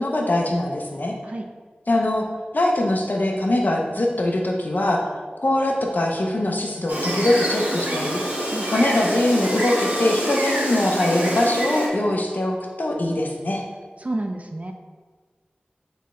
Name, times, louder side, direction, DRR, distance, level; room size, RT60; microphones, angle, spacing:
voice 1, 0.0-1.1 1.9-2.2 2.5-5.1 5.4-8.2 8.7-13.6, left 1 dB, 60° left, 1 dB, 0.7 m, -22 dB
Gull seagull, 6.9-11.9, equal, 60° right, 1.1 m, -26 dB
voice 2, 14.0-14.7, right 2 dB, 40° right, 4 dB, 0.4 m, -30 dB
4.1 x 3.2 x 3.6 m, 1.5 s
wide cardioid pair, 55°, 3 cm